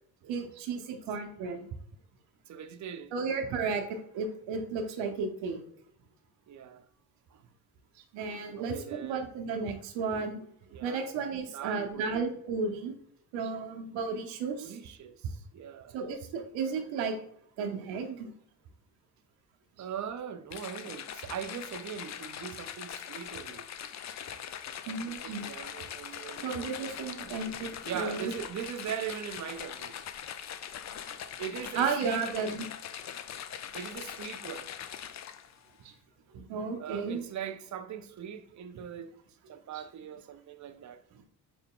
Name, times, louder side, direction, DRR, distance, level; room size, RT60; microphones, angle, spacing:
voice 1, 0.3-1.7 3.1-5.6 8.1-10.4 10.8-12.9 13.3-14.8 15.9-17.2 17.6-18.3 24.9-25.5 26.4-28.4 31.7-32.7 35.8-35.9 36.3-37.2, right 5 dB, 80° right, 0.9 m, -33 dB
voice 2, 2.5-3.3 6.5-6.8 7.3-7.4 8.6-9.2 10.7-11.2 11.5-12.1 14.6-16.1 19.8-23.7 24.8-30.0 31.4-32.6 33.7-34.7 36.8-39.1 39.5-41.0, right 8 dB, 40° right, 0.6 m, -41 dB
sound 1, 20.5-35.6, left 9 dB, 40° left, 0.4 m, -42 dB
4.9 x 2.1 x 3.7 m
supercardioid pair, 55°, 44 cm